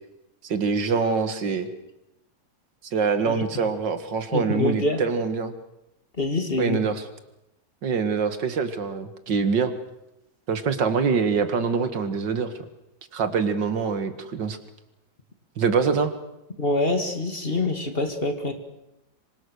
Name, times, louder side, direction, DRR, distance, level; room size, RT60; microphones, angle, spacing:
voice 1, 0.4-1.7 2.9-5.5 6.6-7.0 7.8-9.7 10.5-12.5 13.1-14.6 15.6-16.1, right 5 dB, 85° right, 9 dB, 2.4 m, -24 dB
voice 2, 4.3-5.0 6.2-6.8 16.6-18.5, left 2 dB, 30° left, 6 dB, 2.5 m, -25 dB
26.0 x 25.0 x 6.5 m, 0.90 s
omnidirectional pair, 1.9 m